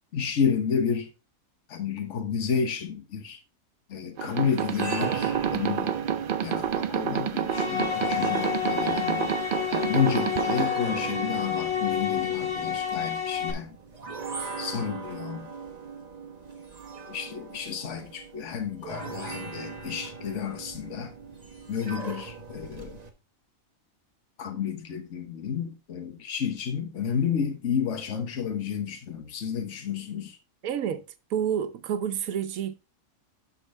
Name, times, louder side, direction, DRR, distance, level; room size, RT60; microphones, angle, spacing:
voice 1, 0.1-1.1 1.7-3.4 3.9-5.9 6.4-9.4 9.7-13.7 14.6-15.5 17.1-21.1 21.7-23.0 24.4-30.4, left 7 dB, 60° left, 1.4 m, -31 dB
sound 1, 4.2-10.7, right 9 dB, 55° right, 0.6 m, -29 dB
sound 2, 4.5-23.1, right 5 dB, 30° right, 1.2 m, -39 dB
sound 3, 7.5-13.5, left 8 dB, 90° left, 1.8 m, -29 dB
voice 2, 30.6-31.0 31.3-32.7, right 8 dB, 90° right, 1.2 m, -29 dB
11.5 x 4.5 x 3.3 m
omnidirectional pair, 1.4 m